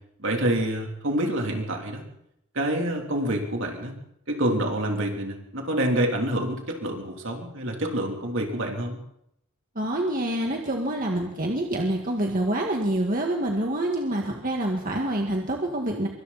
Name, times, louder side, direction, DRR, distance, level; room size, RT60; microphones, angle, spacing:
voice 1, 0.2-2.0 2.6-4.0 4.3-9.0, right 1 dB, 60° right, 2 dB, 3.5 m, -27 dB
voice 2, 9.8-16.1, right 1 dB, 40° right, 1 dB, 2.0 m, -26 dB
25.0 x 24.0 x 4.3 m, 0.78 s
head